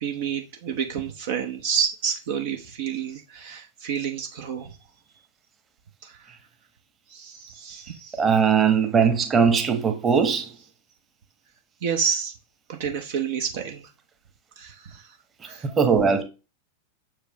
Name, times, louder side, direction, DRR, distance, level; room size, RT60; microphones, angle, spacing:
voice 1, 0.0-4.8 6.0-6.3 7.1-8.3 11.8-12.3 12.7-13.9 14.6-15.2 15.4-15.7, right 7 dB, 55° right, 0.8 m, -29 dB
voice 2, 8.2-10.4 15.8-16.2, right 6 dB, 20° right, 1.2 m, -19 dB
7.0 x 4.9 x 3.0 m
figure-of-eight pair, 90°, 0 cm